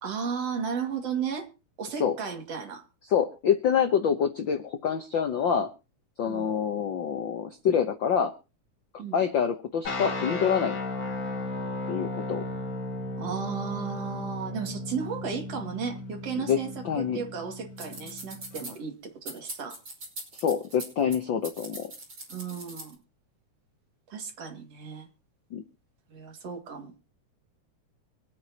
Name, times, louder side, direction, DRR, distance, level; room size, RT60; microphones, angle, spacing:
voice 1, 0.0-1.5 1.8-2.8 6.2-6.5 9.0-9.2 13.2-19.8 22.3-23.0 24.1-25.1 26.1-26.9, right 6 dB, 50° right, 4 dB, 3.2 m, -34 dB
voice 2, 3.1-5.7 6.2-8.3 8.9-10.8 11.9-12.5 16.5-16.6 16.8-17.2 20.3-21.9 25.5-25.6, left 7 dB, 75° left, 8 dB, 1.1 m, -26 dB
sound 1, 9.8-18.7, left 2 dB, 40° left, 2.5 m, -35 dB
sound 2, 17.8-18.7 19.3-21.2 21.4-22.9, right 2 dB, 35° right, 6.1 m, -41 dB
25.0 x 9.5 x 2.9 m, 0.32 s
omnidirectional pair, 3.6 m